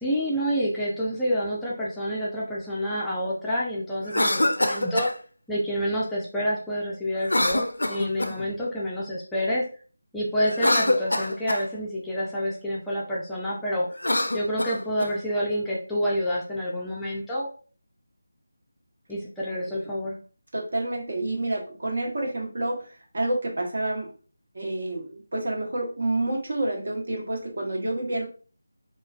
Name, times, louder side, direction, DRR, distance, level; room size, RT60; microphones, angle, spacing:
voice 1, 0.0-5.1 5.5-9.6 10.1-13.9 14.3-17.5 19.1-20.2, equal, 5° left, -7 dB, 0.4 m, -28 dB
Cough, 4.0-5.1 7.2-8.5 10.4-11.7 13.9-15.1, left 1 dB, 80° left, 0.4 m, -25 dB
voice 2, 20.5-24.1 24.5-28.2, right 1 dB, 60° right, -1 dB, 1.2 m, -29 dB
3.0 x 2.3 x 2.4 m, 0.39 s
figure-of-eight pair, 165°, 0 cm